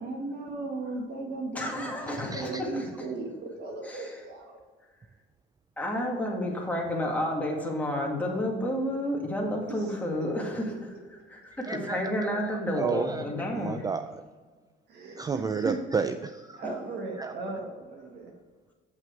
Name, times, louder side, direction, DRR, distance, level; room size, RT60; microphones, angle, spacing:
voice 1, 0.0-4.5 9.7-9.9 14.9-15.7 16.5-18.3, right 3 dB, 55° right, 1 dB, 1.5 m, -36 dB
voice 2, 1.5-3.1 3.8-4.2 5.8-10.9 11.3-13.8 16.6-16.7, left 1 dB, 10° left, -1 dB, 1.9 m, -31 dB
voice 3, 2.2-2.6 11.7-13.3 13.5-14.2 15.2-16.6 17.2-17.3, right 5 dB, 20° right, 9 dB, 0.3 m, -32 dB
7.5 x 6.0 x 4.6 m, 1.4 s
cardioid pair, 110°, 20 cm